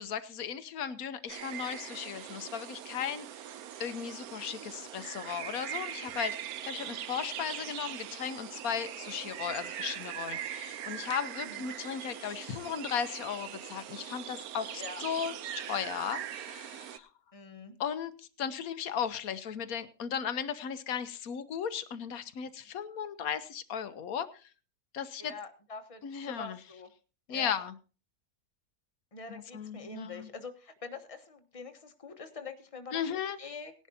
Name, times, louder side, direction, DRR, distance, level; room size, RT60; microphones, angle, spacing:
voice 1, 0.0-3.3 3.8-17.1 17.8-18.1 18.4-24.5 24.9-25.3 26.0-26.6 27.3-27.7 29.3-30.3 32.9-33.4, left 8 dB, 75° left, 12 dB, 1.3 m, -36 dB
sound 1, 1.3-17.0, right 10 dB, 80° right, 1.2 m, -41 dB
voice 2, 17.3-17.8 25.2-26.9 27.3-27.6 29.1-33.7, left 4 dB, 25° left, 6 dB, 1.2 m, -45 dB
18.5 x 11.0 x 2.8 m, 0.34 s
omnidirectional pair, 1.6 m